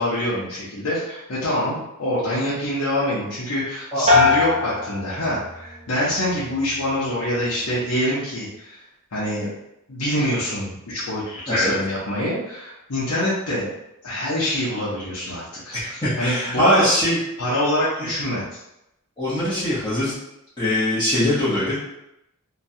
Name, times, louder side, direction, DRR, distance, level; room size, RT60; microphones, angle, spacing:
voice 1, 0.0-8.8 9.1-9.5 9.9-13.7 14.0-16.9 17.4-18.6, left 1 dB, 80° left, -9 dB, 0.8 m, -25 dB
sound 1, 4.1-5.8 6.2-6.8, left 3 dB, 25° right, 0.4 m, -21 dB
voice 2, 15.7-17.2 18.0-18.1 19.2-20.1 20.6-21.8, equal, 20° left, -12 dB, 0.8 m, -22 dB
3.0 x 2.3 x 2.6 m, 0.85 s
head